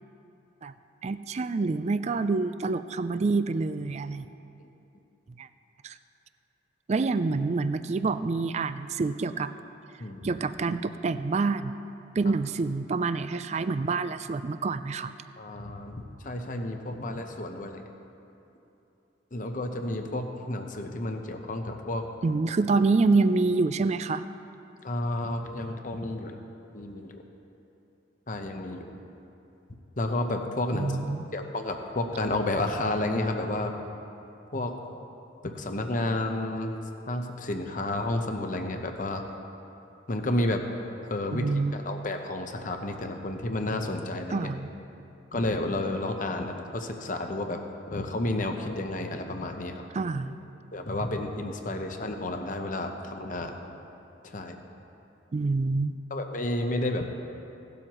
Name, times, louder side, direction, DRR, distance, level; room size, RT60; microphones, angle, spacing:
voice 1, 1.0-4.3 5.4-5.5 5.8-5.9 6.9-9.5 10.2-11.8 12.2-15.1 22.2-24.2 30.7-31.3 41.3-41.8 44.3-44.7 49.9-50.4 55.3-56.0, right 3 dB, 35° right, 12 dB, 0.3 m, -27 dB
voice 2, 15.4-17.8 19.3-22.0 24.8-26.4 26.7-27.2 28.3-28.9 30.0-30.9 31.3-33.7 34.5-34.7 35.4-36.7 37.1-39.2 40.1-40.6 41.0-44.5 45.3-47.6 47.9-49.8 50.7-53.5 54.2-54.6 56.1-57.1, left 2 dB, 45° left, 5 dB, 0.8 m, -31 dB
17.0 x 12.0 x 3.0 m, 2.8 s
head